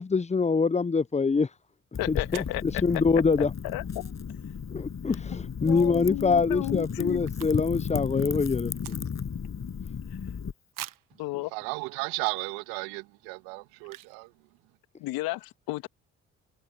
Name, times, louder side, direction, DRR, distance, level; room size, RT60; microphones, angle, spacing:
voice 1, 0.0-1.5 2.1-3.5 4.7-9.0, left 4 dB, 20° left, 0.8 m, -25 dB
sound 1, 1.6-1.7 2.3-2.6 5.6-5.9 6.2-6.3 6.4-7.9 8.2-9.4 9.9-10.0 10.7-11.2 11.9-12.0 12.5-12.7 13.8-14.3 14.6-14.7 14.8-15.2, right 12 dB, 60° right, 1.7 m, -45 dB
Wind / Fire, 1.9-10.5, left 7 dB, 45° left, 7.0 m, -34 dB
voice 2, 2.0-3.0 3.4-4.1 5.6-7.2 11.2-11.5 15.0-15.9, left 18 dB, 75° left, 2.0 m, -33 dB
voice 3, 11.5-14.3, right 26 dB, 80° right, 2.7 m, -34 dB
hypercardioid pair, 45°, 36 cm